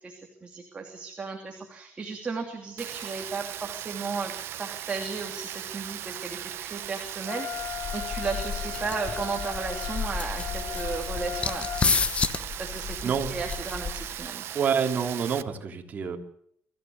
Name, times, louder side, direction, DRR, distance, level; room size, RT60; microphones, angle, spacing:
voice 1, 0.0-4.3 4.6-11.7 12.3-14.4, right 4 dB, 25° right, 2 dB, 2.8 m, -35 dB
Rain, 2.8-15.4, right 12 dB, 70° right, 0.9 m, -38 dB
Wind instrument woodwind instrument, 7.2-11.9, left 12 dB, 50° left, 0.8 m, -38 dB
sound 1, 7.6-14.3, left 5 dB, 30° left, 1.1 m, -31 dB
voice 2, 13.0-13.4 14.5-16.2, right 6 dB, 40° right, 3 dB, 3.1 m, -27 dB
24.5 x 15.0 x 8.0 m, 0.68 s
cardioid pair, 145°, 4 cm